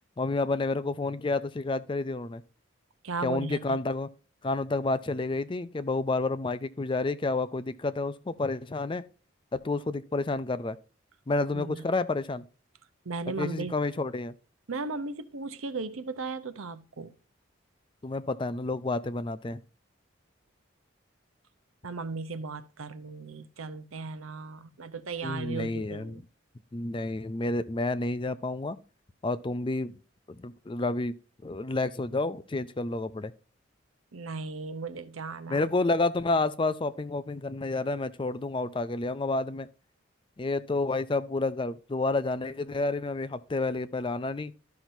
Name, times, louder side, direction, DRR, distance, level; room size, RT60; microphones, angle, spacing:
voice 1, 0.2-2.4 3.2-4.1 4.4-9.0 9.5-10.8 11.3-12.5 13.4-14.3 18.0-19.6 25.2-26.2 26.7-28.8 29.2-29.9 30.3-31.2 31.4-33.3 35.5-39.7 40.4-44.5, left 2 dB, 25° left, 0.4 m, -30 dB
voice 2, 3.0-3.8 11.5-11.9 13.0-13.7 14.7-17.1 21.8-26.2 34.1-35.6, right 4 dB, 90° right, 0.8 m, -36 dB
13.0 x 5.9 x 2.6 m
head